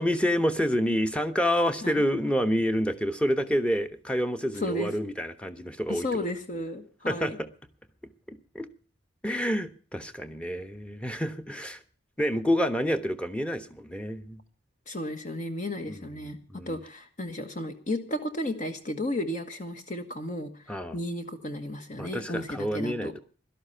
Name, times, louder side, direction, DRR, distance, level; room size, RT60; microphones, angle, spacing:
voice 1, 0.0-6.1 7.1-7.5 8.3-8.7 9.2-11.8 12.2-14.4 15.9-16.0 16.5-16.8 20.7-21.0 22.0-23.2, equal, 5° left, 8 dB, 1.1 m, -28 dB
voice 2, 4.5-4.9 5.9-7.4 14.9-16.4 16.7-23.1, left 1 dB, 40° left, 6 dB, 1.5 m, -33 dB
17.5 x 12.5 x 5.7 m, 0.41 s
head